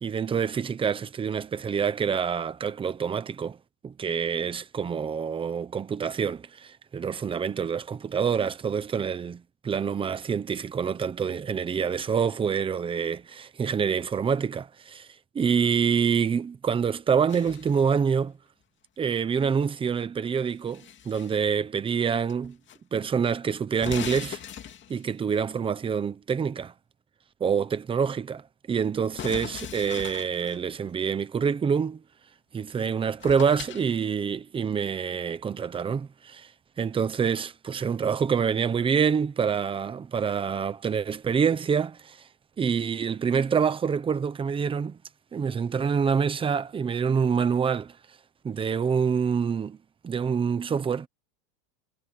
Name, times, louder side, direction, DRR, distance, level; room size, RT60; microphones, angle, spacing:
voice 1, 0.0-3.6 3.8-15.1 15.3-18.3 19.0-22.6 22.9-24.4 24.9-26.7 27.4-32.0 32.5-36.5 36.8-42.3 42.6-45.0 45.3-48.0 48.4-49.8 50.0-51.1, right 6 dB, 10° right, 0.8 m, -26 dB
sound 1, 17.3-17.9 20.3-21.4 22.3-22.8 23.0-23.1 23.7-25.1 29.2-30.6 32.7-32.8 33.2-33.9, left 9 dB, 20° left, 2.4 m, -39 dB
supercardioid pair, 155°, 49 cm